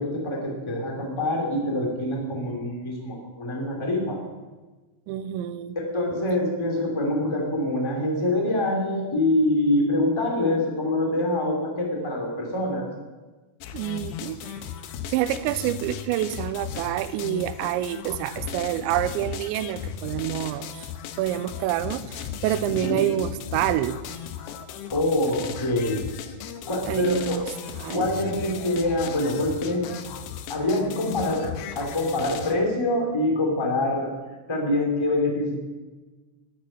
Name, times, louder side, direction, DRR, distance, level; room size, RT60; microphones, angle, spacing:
voice 1, 0.0-4.2 5.9-12.9 22.8-23.0 24.9-26.0 26.7-27.4 27.9-29.8 30.5-34.1 34.5-35.6, left 1 dB, 10° left, 0 dB, 1.9 m, -25 dB
voice 2, 5.1-5.8 13.7-14.5 15.1-20.9 21.2-24.0 26.9-27.4 27.8-28.1, right 13 dB, 80° right, 12 dB, 2.8 m, -27 dB
sound 1, 13.6-32.6, left 8 dB, 75° left, 2.5 m, -36 dB
12.5 x 9.7 x 8.9 m, 1.2 s
omnidirectional pair, 5.4 m